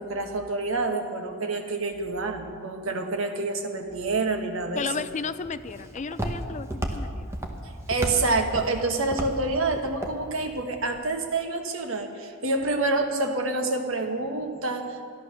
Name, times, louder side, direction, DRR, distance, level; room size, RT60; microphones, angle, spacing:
voice 1, 0.0-4.8 7.9-15.0, right 3 dB, 75° right, 4 dB, 1.5 m, -27 dB
voice 2, 4.7-7.3, left 5 dB, 35° left, 13 dB, 0.4 m, -33 dB
Walk footsteps, 4.8-11.0, right 1 dB, 15° right, 1.1 m, -34 dB
14.0 x 11.0 x 6.4 m, 2.2 s
head